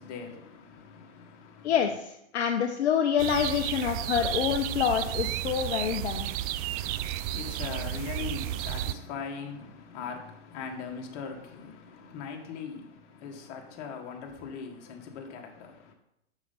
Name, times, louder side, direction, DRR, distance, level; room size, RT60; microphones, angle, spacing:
voice 1, 0.0-1.7 6.6-15.9, left 6 dB, 45° left, 1.8 m, -41 dB
voice 2, 1.6-6.3, left 8 dB, 70° left, 0.8 m, -27 dB
sound 1, 3.2-8.9, right 13 dB, 35° right, 0.4 m, -32 dB
7.2 x 6.7 x 4.1 m
hypercardioid pair, 105°, 35 cm